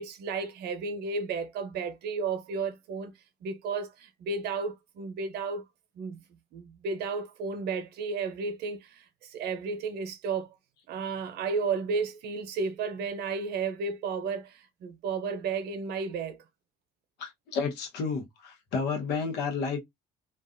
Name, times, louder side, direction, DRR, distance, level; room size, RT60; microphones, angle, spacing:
voice 1, 0.0-3.1 3.4-5.6 5.9-6.3 6.5-10.5 10.9-16.4, right 4 dB, 75° right, 0.6 m, -33 dB
voice 2, 17.2-19.8, left 5 dB, 85° left, 1.0 m, -31 dB
2.4 x 2.3 x 2.5 m
cardioid pair, 110°, 17 cm